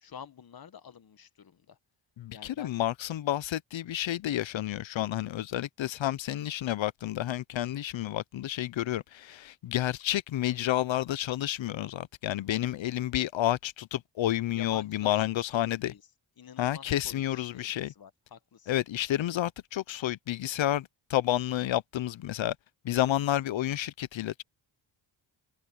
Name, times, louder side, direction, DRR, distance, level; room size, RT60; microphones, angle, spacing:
voice 1, 0.0-1.8 2.3-2.7 14.5-16.0 16.4-18.7, left 7 dB, 45° left, 1.3 m, -48 dB
voice 2, 2.2-15.9 16.6-17.9 18.7-22.6 22.8-24.4, left 13 dB, 65° left, 0.8 m, -30 dB
cardioid pair, 70°, 49 cm